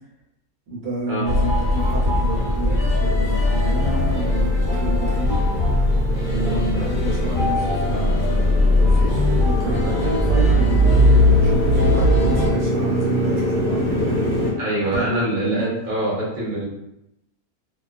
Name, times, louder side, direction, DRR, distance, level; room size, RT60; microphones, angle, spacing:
voice 1, 0.7-5.4 6.3-13.8 14.9-15.8, right 2 dB, 75° right, -5 dB, 1.3 m, -29 dB
sound 1, 1.2-12.5, left 1 dB, 65° left, 0.5 m, -19 dB
Motorcycle, 1.9-14.5, left 1 dB, 25° left, 0.7 m, -26 dB
voice 2, 14.6-16.6, right 1 dB, 40° right, -6 dB, 0.9 m, -24 dB
2.6 x 2.3 x 2.4 m, 0.85 s
omnidirectional pair, 1.6 m